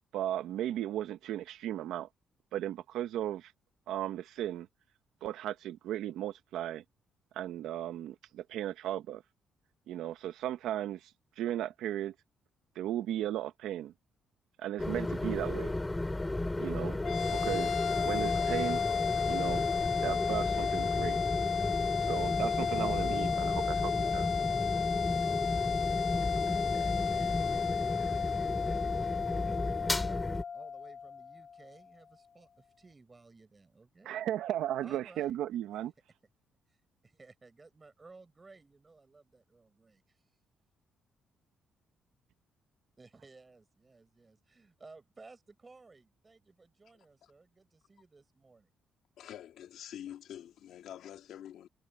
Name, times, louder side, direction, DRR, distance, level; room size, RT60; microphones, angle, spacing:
voice 1, 0.1-2.1 2.5-3.5 3.9-4.7 5.2-6.8 7.3-9.2 9.9-12.1 12.7-13.9 14.6-15.7 16.6-17.0 17.3-18.8 19.3-19.6 20.0-21.2 22.0-24.3 34.0-35.9, right 12 dB, 85° right, 1.2 m, -36 dB
sound 1, 14.8-30.4, left 2 dB, 15° left, 2.3 m, -34 dB
sound 2, 17.0-31.6, left 6 dB, 50° left, 1.2 m, -33 dB
voice 2, 26.4-30.2 30.5-34.3 34.8-35.4 35.7-35.8 37.0-40.2 43.0-48.7, right 3 dB, 25° right, 7.3 m, -57 dB
voice 3, 49.2-51.7, left 11 dB, 75° left, 2.1 m, -46 dB
cardioid pair, 90°, 0 cm